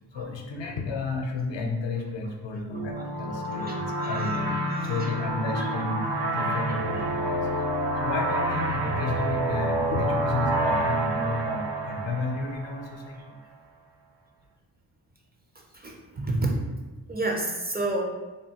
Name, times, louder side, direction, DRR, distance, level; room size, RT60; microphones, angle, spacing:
voice 1, 0.1-4.6 4.8-7.5 8.0-13.4, left 3 dB, 85° left, 2 dB, 0.6 m, -32 dB
sound 1, 2.7-13.1, right 1 dB, 70° right, 0.6 m, -28 dB
voice 2, 3.6-4.2 4.7-5.0 5.5-5.7 7.5-7.6 15.8-16.6 17.1-18.0, right 2 dB, 25° right, 0 dB, 0.4 m, -30 dB
3.4 x 2.2 x 2.8 m, 1.2 s
cardioid pair, 95°, 43 cm